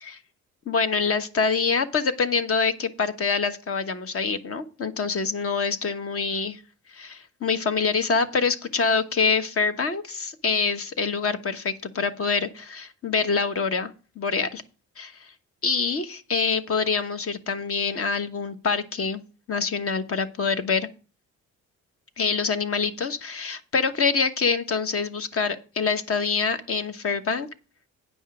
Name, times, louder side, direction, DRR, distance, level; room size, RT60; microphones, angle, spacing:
voice 1, 0.7-6.6 6.9-13.9 14.2-14.6 15.0-15.3 15.6-19.2 19.5-20.9 22.2-27.5, left 5 dB, 50° left, 9 dB, 1.2 m, -25 dB
9.4 x 5.5 x 6.2 m, 0.37 s
cardioid pair, 90°, 30 cm